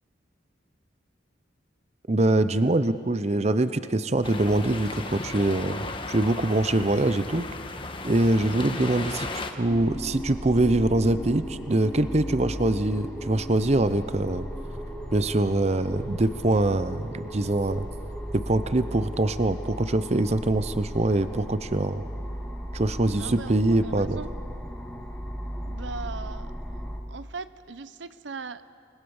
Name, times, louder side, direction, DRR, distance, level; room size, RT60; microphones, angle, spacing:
voice 1, 2.1-7.5 8.0-14.5 15.1-17.9 18.3-22.0 22.7-24.2, right 2 dB, 35° right, 12 dB, 0.7 m, -24 dB
sound 1, 4.2-9.5, left 2 dB, 30° left, 1.3 m, -35 dB
sound 2, 9.6-27.0, equal, 5° left, 2.3 m, -36 dB
voice 2, 23.2-24.3 25.7-26.5 27.1-28.6, right 4 dB, 75° right, 14 dB, 0.7 m, -39 dB
28.5 x 20.5 x 7.1 m, 2.2 s
head